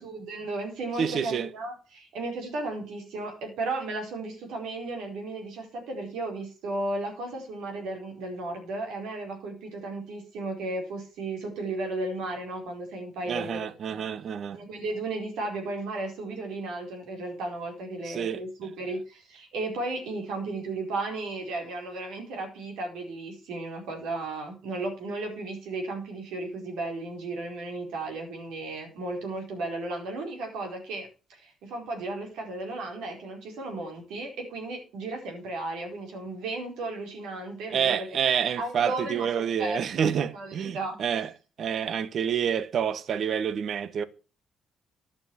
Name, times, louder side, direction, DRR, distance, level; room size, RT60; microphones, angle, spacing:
voice 1, 0.0-14.1 14.5-38.2 38.6-40.0 40.3-41.0, right 2 dB, 90° right, 4.7 m, -34 dB
voice 2, 1.0-1.5 13.3-14.6 18.1-18.4 37.7-41.3 41.6-44.0, right 8 dB, 60° right, 1.0 m, -28 dB
11.5 x 6.9 x 7.1 m
cardioid pair, 90°, 0 cm